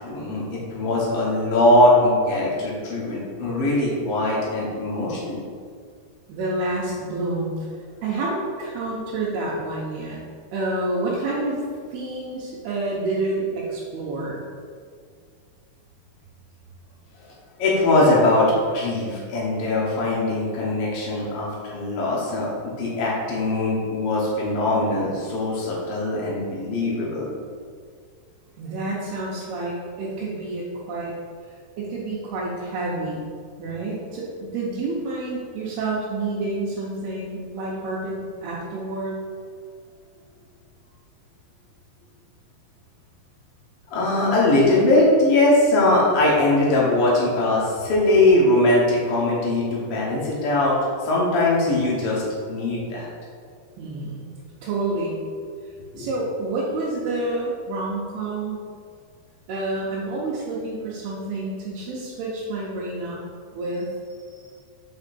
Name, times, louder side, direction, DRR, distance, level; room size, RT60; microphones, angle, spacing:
voice 1, 0.0-5.4 17.6-22.5 22.8-27.3 43.9-50.7 51.0-52.2 52.5-53.1 55.9-56.1, left 2 dB, 75° left, -6 dB, 1.3 m, -21 dB
voice 2, 6.3-7.6 8.0-10.2 10.5-11.6 11.9-14.4 28.6-31.1 31.8-33.3 33.6-39.2 53.8-55.2 55.9-58.6 59.5-63.2 63.5-63.9 64.4-64.5, right 2 dB, 80° right, -6 dB, 2.8 m, -28 dB
5.5 x 5.3 x 4.1 m, 2.1 s
omnidirectional pair, 4.7 m